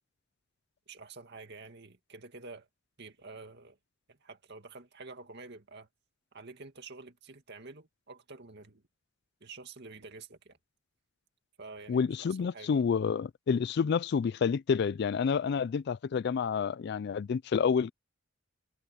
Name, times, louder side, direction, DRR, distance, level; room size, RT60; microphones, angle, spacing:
voice 1, 0.9-2.7 3.0-3.8 4.1-5.9 6.3-8.8 9.4-10.6 11.6-12.9, right 3 dB, 55° right, 2.2 m, -48 dB
voice 2, 11.9-17.9, left 6 dB, 55° left, 0.3 m, -29 dB
head